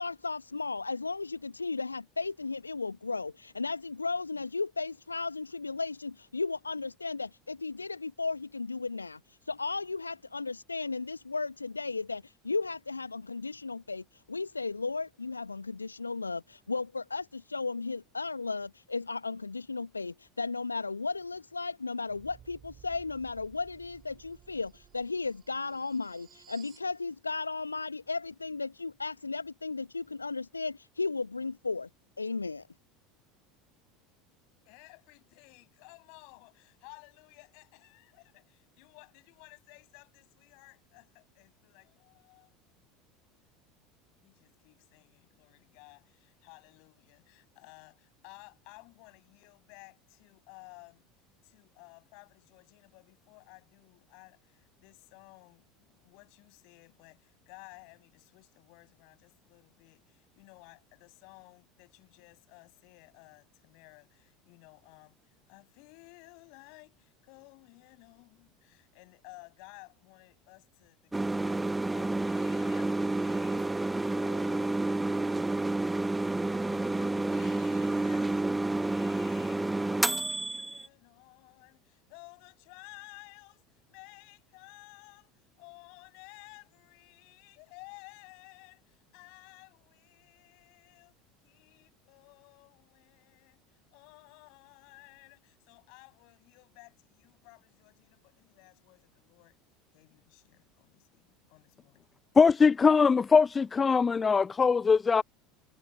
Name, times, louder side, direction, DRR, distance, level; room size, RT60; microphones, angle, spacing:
voice 1, 0.0-31.9 32.2-32.7, left 4 dB, 85° left, 1.0 m, -35 dB
sound 1, 22.1-26.9, right 9 dB, 35° right, 7.7 m, -57 dB
voice 2, 34.6-42.5 44.2-51.1 51.4-85.3 85.6-91.2 91.4-93.6 93.9-99.6 99.9-102.1, left 38 dB, 55° left, 6.3 m, -55 dB
sound 2, 71.1-80.9, right 2 dB, 10° right, 1.2 m, -30 dB
voice 3, 102.4-105.2, left 5 dB, 20° left, 0.5 m, -22 dB
figure-of-eight pair, 75°, 0 cm